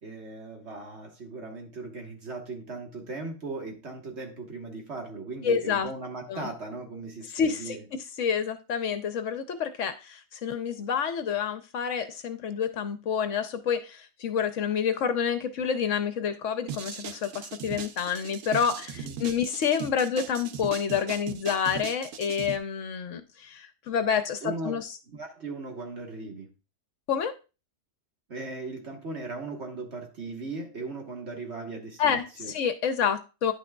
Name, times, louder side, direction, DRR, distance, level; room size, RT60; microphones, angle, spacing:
voice 1, 0.0-7.8 19.0-19.3 24.4-24.8 25.1-26.5 28.3-32.5, right 3 dB, 55° right, 1.7 m, -38 dB
voice 2, 5.4-5.9 6.3-6.5 7.3-7.8 8.2-24.9 27.1-27.3 32.0-33.5, left 7 dB, 65° left, 1.0 m, -28 dB
sound 1, 16.7-22.6, right 7 dB, 75° right, 1.1 m, -39 dB
10.0 x 6.1 x 2.3 m
omnidirectional pair, 1.4 m